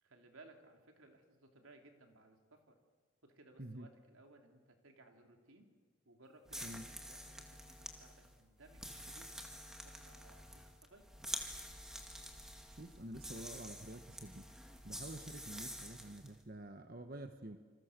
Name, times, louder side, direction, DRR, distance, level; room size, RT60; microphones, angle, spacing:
voice 1, 0.0-2.8 3.2-5.7 6.1-7.7 8.0-9.4 9.8-11.0, right 2 dB, 90° right, 3 dB, 3.6 m, -62 dB
sound 1, 6.4-16.3, equal, 5° right, 2.0 m, -48 dB
voice 2, 12.8-14.5 14.8-17.6, right 1 dB, 45° right, 7 dB, 1.3 m, -48 dB
28.0 x 26.5 x 6.8 m, 1.5 s
head